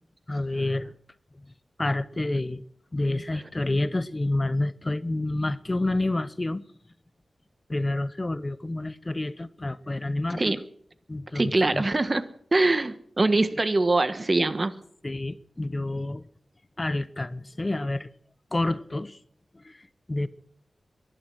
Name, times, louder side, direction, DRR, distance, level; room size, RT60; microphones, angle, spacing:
voice 1, 0.3-0.9 1.8-2.6 2.9-6.6 7.7-10.6 11.1-11.9 15.0-16.3 16.8-18.1 18.5-19.2 19.5-20.3, left 2 dB, 25° left, 0.7 m, -29 dB
voice 2, 11.3-12.2 12.5-14.7, right 2 dB, 35° right, 1.3 m, -23 dB
19.0 x 12.0 x 6.2 m
wide cardioid pair, 100°, 0 cm